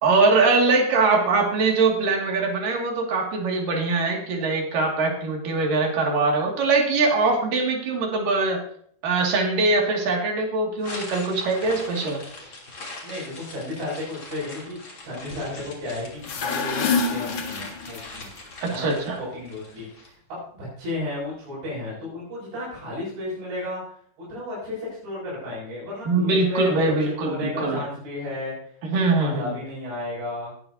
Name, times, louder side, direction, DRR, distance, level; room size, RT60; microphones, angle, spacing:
voice 1, 0.0-8.6 9.0-12.2 18.6-19.2 26.1-27.8 28.9-29.6, right 3 dB, 55° right, 0 dB, 3.8 m, -22 dB
sound 1, 10.8-20.1, left 2 dB, 30° left, 3.4 m, -41 dB
voice 2, 13.0-23.8 24.2-26.7 27.0-28.5 28.9-30.5, left 1 dB, 90° right, -9 dB, 9.4 m, -33 dB
sound 2, 16.1-18.3, left 4 dB, 55° left, 2.4 m, -26 dB
20.0 x 11.5 x 2.8 m, 0.62 s
omnidirectional pair, 4.9 m